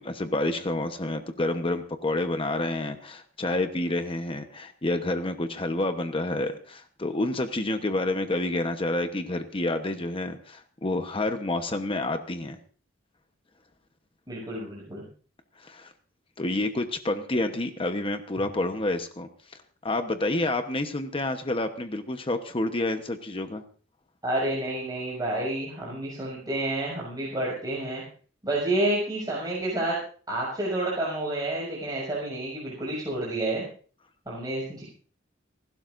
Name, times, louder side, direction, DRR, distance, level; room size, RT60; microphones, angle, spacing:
voice 1, 0.0-12.6 15.6-15.9 16.4-23.6, left 2 dB, 30° left, 7 dB, 1.0 m, -29 dB
voice 2, 14.3-15.1 24.2-28.0 28.4-30.0 30.3-33.6 34.3-34.8, right 1 dB, 20° right, -5 dB, 6.3 m, -29 dB
29.5 x 12.0 x 2.6 m, 0.42 s
head